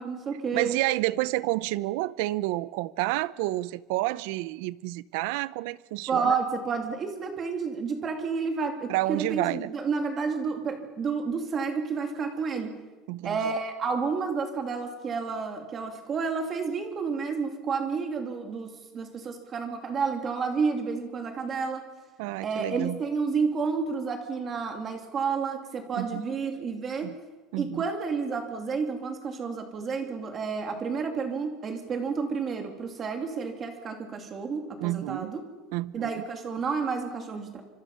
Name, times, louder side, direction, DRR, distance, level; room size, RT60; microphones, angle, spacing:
voice 1, 0.0-0.8 6.1-12.8 13.2-21.8 22.4-27.1 27.6-35.4 35.9-37.6, right 5 dB, 25° right, 2.8 m, -30 dB
voice 2, 0.5-6.4 8.9-9.7 13.1-13.5 22.2-23.0 25.9-26.2 27.0-27.1 27.5-27.8 34.8-35.3 35.7-36.1, right 18 dB, 70° right, 0.7 m, -29 dB
25.5 x 25.5 x 5.6 m
cardioid pair, 170°, 0 cm